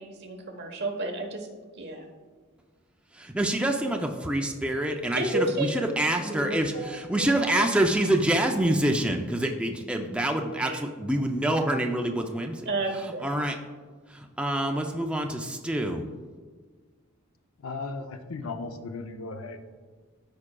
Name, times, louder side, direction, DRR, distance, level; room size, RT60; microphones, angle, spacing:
voice 1, 0.0-1.5 1.8-2.1 5.1-5.7 6.2-7.6 10.6-10.8 12.7-13.3, right 2 dB, 55° right, 3 dB, 1.1 m, -32 dB
voice 2, 3.2-12.7 13.2-13.5 14.1-16.0, right 1 dB, 5° right, 3 dB, 0.4 m, -26 dB
voice 3, 17.6-19.7, left 3 dB, 85° left, 8 dB, 0.6 m, -36 dB
13.0 x 4.9 x 2.2 m, 1.5 s
head